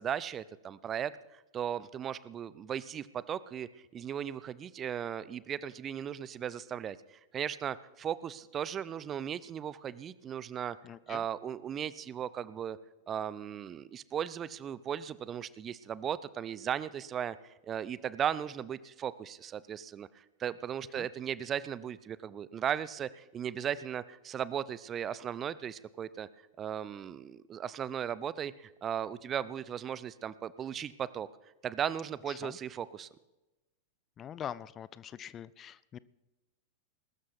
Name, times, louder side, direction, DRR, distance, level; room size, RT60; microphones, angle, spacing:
voice 1, 0.0-7.0 7.3-10.8 11.1-12.8 13.1-26.3 26.6-31.3 31.6-33.1, right 9 dB, 25° right, 18 dB, 0.6 m, -37 dB
voice 2, 10.8-11.2 20.9-21.1 32.3-32.6 34.2-36.0, left 9 dB, 25° left, 19 dB, 0.4 m, -43 dB
21.0 x 12.5 x 4.1 m, 1.0 s
figure-of-eight pair, 90°, 0 cm